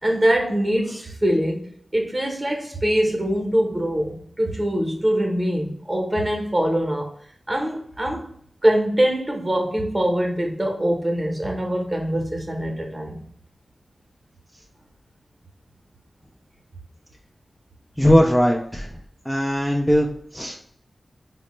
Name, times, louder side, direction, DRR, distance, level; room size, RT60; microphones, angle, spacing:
voice 1, 0.0-1.6 1.9-7.1 7.5-8.3 8.6-13.2, right 1 dB, 20° right, 1 dB, 0.8 m, -23 dB
voice 2, 18.0-18.9 19.3-20.1 20.3-20.6, equal, 5° left, -1 dB, 0.4 m, -19 dB
4.9 x 2.1 x 3.0 m, 0.65 s
wide cardioid pair, 110°, 0 cm